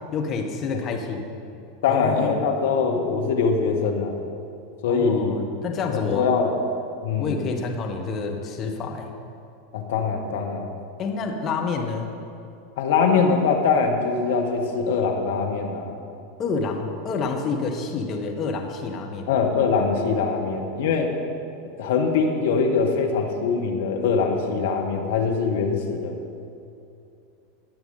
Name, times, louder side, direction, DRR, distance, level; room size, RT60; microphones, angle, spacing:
voice 1, 0.1-1.2 1.9-2.3 4.9-6.3 7.2-9.1 11.0-12.1 16.4-19.3, left 4 dB, 30° left, 2 dB, 1.5 m, -28 dB
voice 2, 1.8-4.2 4.8-5.4 5.9-6.5 7.0-7.4 9.7-10.7 12.8-15.9 19.3-21.1 21.8-26.2, left 5 dB, 60° left, 2 dB, 1.2 m, -23 dB
19.5 x 6.7 x 4.2 m, 2.7 s
figure-of-eight pair, 85°, 0 cm